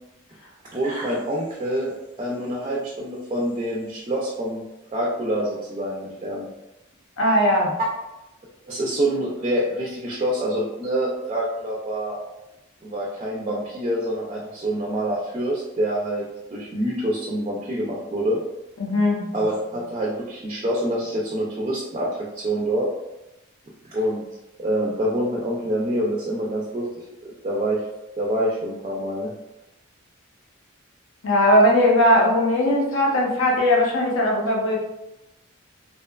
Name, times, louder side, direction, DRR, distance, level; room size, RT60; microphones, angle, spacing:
voice 1, 0.7-4.6 4.9-6.5 8.7-12.2 12.8-16.2 16.5-18.4 19.3-22.9 23.8-24.2 24.6-26.9 27.2-27.8 28.2-29.3, right 1 dB, 30° right, -3 dB, 0.3 m, -26 dB
voice 2, 7.2-7.7 18.8-19.3 31.2-34.8, left 1 dB, 70° left, -1 dB, 0.6 m, -19 dB
2.7 x 2.2 x 2.2 m, 0.95 s
head